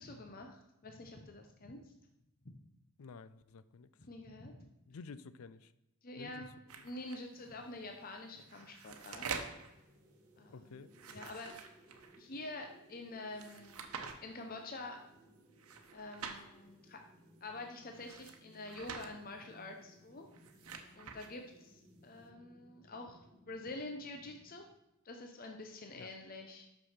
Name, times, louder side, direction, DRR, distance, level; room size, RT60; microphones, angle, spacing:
voice 1, 0.0-1.9 2.4-2.6 4.0-4.7 6.0-6.5 6.8-9.3 10.4-11.7 12.2-13.9 14.2-15.0 15.9-17.0 17.4-20.3 21.0-24.7 25.0-26.7, left 2 dB, 40° left, 4 dB, 0.7 m, -47 dB
voice 2, 3.0-3.9 4.9-5.7 6.2-6.5 6.7-6.9 10.5-10.9 26.0-26.1, left 4 dB, 75° left, 15 dB, 0.4 m, -51 dB
sound 1, 6.7-7.2 8.3-9.7 10.9-12.2 13.4-14.1 15.6-16.4 17.9-19.1 20.2-21.3, right 5 dB, 80° right, 0.9 m, -46 dB
sound 2, 7.3-24.7, equal, 10° right, 1.3 m, -64 dB
6.2 x 6.1 x 5.7 m, 0.91 s
head